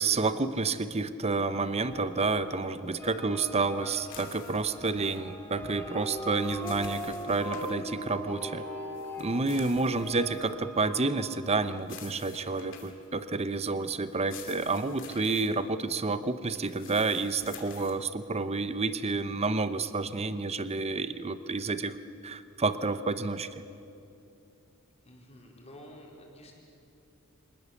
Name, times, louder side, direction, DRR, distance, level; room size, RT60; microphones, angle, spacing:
voice 1, 0.0-8.7 9.2-22.0 22.2-23.6, right 3 dB, 30° right, 13 dB, 0.7 m, -30 dB
sound 1, 1.4-11.4, equal, 10° left, 2.5 m, -41 dB
sound 2, 4.1-5.2 6.2-7.7 8.9-10.5 11.8-13.1 14.1-15.5 16.5-18.0, left 8 dB, 60° left, 2.6 m, -49 dB
voice 2, 25.1-26.5, left 1 dB, 30° left, -1 dB, 4.1 m, -50 dB
25.0 x 19.5 x 7.2 m, 2.8 s
head